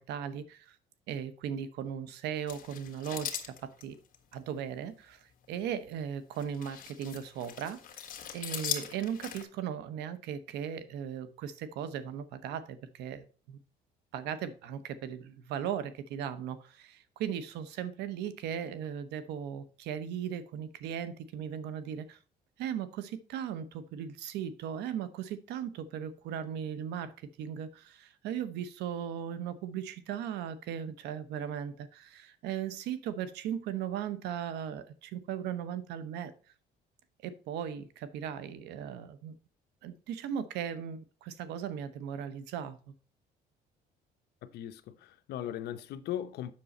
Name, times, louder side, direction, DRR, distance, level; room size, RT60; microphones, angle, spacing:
voice 1, 0.1-0.8 1.1-4.0 4.3-7.8 8.3-13.6 14.1-22.2 22.6-36.3 37.2-39.3 39.8-42.9, right 9 dB, 85° right, 1.0 m, -37 dB
sound 1, 2.5-4.3 5.4-5.7 6.3-9.4, left 9 dB, 55° left, 1.6 m, -40 dB
voice 2, 44.4-46.5, left 11 dB, 75° left, 0.8 m, -38 dB
7.6 x 6.3 x 4.2 m
cardioid pair, 110°, 17 cm